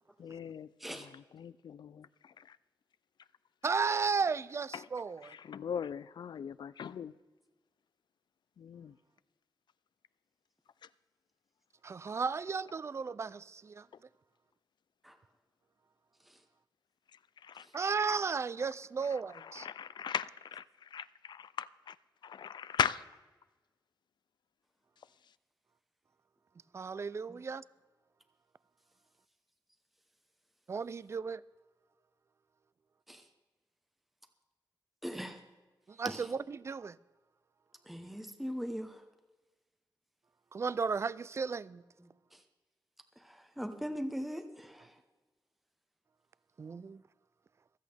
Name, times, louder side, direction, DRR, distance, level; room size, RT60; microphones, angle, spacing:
voice 1, 0.2-0.7 1.3-2.6 4.7-4.9 5.2-7.1 8.6-8.9 17.4-17.7 19.5-22.0 22.2-23.0, left 7 dB, 80° left, 0.4 m, -38 dB
voice 2, 0.8-1.1 15.0-15.2 16.2-16.4 17.6-17.7 27.3-27.4 33.1-33.2 35.0-35.4 36.0-36.3 37.8-39.0 42.0-42.4 43.2-45.0, equal, ahead, 0.9 m, -41 dB
voice 3, 3.6-5.4 11.8-13.9 17.7-19.7 26.7-27.6 30.7-31.4 35.9-37.0 40.5-41.8 46.6-47.0, right 5 dB, 35° right, 0.4 m, -34 dB
25.0 x 8.5 x 3.4 m
wide cardioid pair, 140°, 8 cm